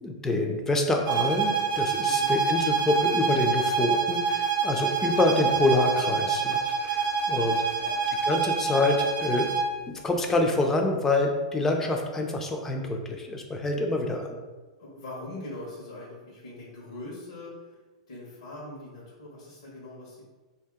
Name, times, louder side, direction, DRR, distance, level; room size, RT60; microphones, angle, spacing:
voice 1, 0.0-7.6 8.3-9.6 9.9-14.4, left 2 dB, 15° left, 3 dB, 0.4 m, -26 dB
sound 1, 1.1-9.8, right 5 dB, 40° right, 0.5 m, -26 dB
voice 2, 2.0-2.4 7.7-8.1 14.8-17.8 18.1-20.2, left 1 dB, 85° left, -5 dB, 1.2 m, -42 dB
2.7 x 2.6 x 3.6 m, 1.3 s
hypercardioid pair, 140°, 3 cm